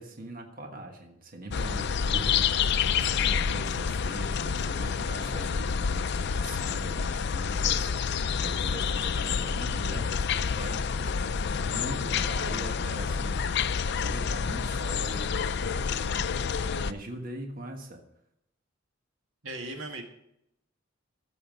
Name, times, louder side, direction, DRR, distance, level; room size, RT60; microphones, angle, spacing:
voice 1, 0.0-13.4 13.8-18.0, right 1 dB, 45° right, 3 dB, 1.4 m, -42 dB
sound 1, 1.5-16.9, left 6 dB, 60° left, 0.5 m, -28 dB
sound 2, 3.5-8.9, equal, 30° right, 1.2 m, -55 dB
voice 2, 19.4-20.0, right 2 dB, 85° right, 4 dB, 1.7 m, -38 dB
14.5 x 7.0 x 5.2 m, 0.79 s
head